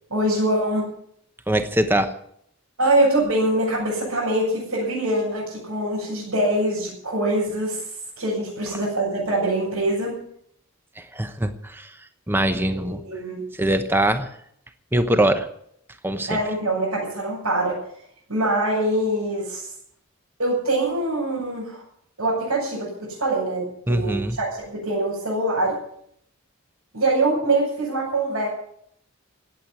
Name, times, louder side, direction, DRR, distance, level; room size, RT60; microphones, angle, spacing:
voice 1, 0.1-0.9 2.8-7.9 8.2-10.1 12.8-13.4 16.3-17.8 18.3-19.7 20.4-21.8 22.2-25.8 26.9-28.5, right 1 dB, 85° right, -7 dB, 7.4 m, -24 dB
voice 2, 1.5-2.1 11.0-11.9 12.3-13.0 13.6-14.3 14.9-15.5 16.0-16.4 23.9-24.4, right 1 dB, 10° right, 9 dB, 1.0 m, -22 dB
18.0 x 8.2 x 9.5 m, 0.69 s
head